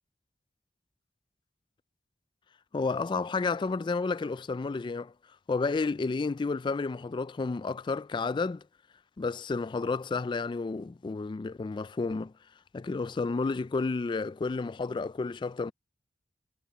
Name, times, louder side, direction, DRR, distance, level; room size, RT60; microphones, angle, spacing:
voice 1, 2.7-5.1 5.5-8.6 9.2-12.3 12.7-15.7, left 4 dB, 25° left, 0.3 m, -31 dB
head